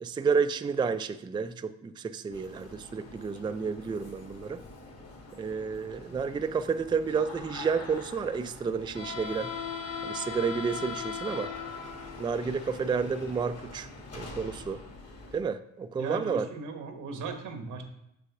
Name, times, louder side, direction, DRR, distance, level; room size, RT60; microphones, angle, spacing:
voice 1, 0.0-4.6 5.4-9.5 10.0-11.5 12.2-13.9 14.1-14.8 15.3-16.5, right 5 dB, 15° right, 10 dB, 0.3 m, -30 dB
sound 1, 2.3-15.4, left 5 dB, 55° left, 1.9 m, -41 dB
voice 2, 16.0-17.8, right 4 dB, 85° right, 5 dB, 1.2 m, -37 dB
6.7 x 3.4 x 6.0 m, 0.82 s
cardioid pair, 90°, 30 cm